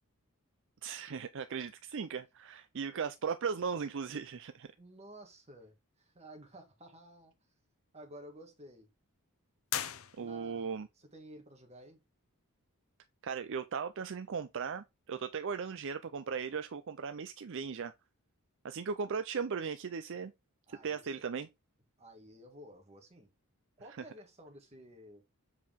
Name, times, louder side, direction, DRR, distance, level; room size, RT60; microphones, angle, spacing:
voice 1, 0.8-4.7 10.2-10.9 13.2-17.9 18.6-20.3 20.7-21.5, right 6 dB, 55° right, 0.5 m, -37 dB
voice 2, 4.8-7.3 7.9-8.9 10.2-12.0 20.7-21.1 22.0-23.3 23.8-25.2, right 1 dB, 30° right, 1.8 m, -53 dB
sound 1, 9.7-10.7, left 10 dB, 65° left, 0.8 m, -39 dB
7.3 x 4.8 x 3.6 m
head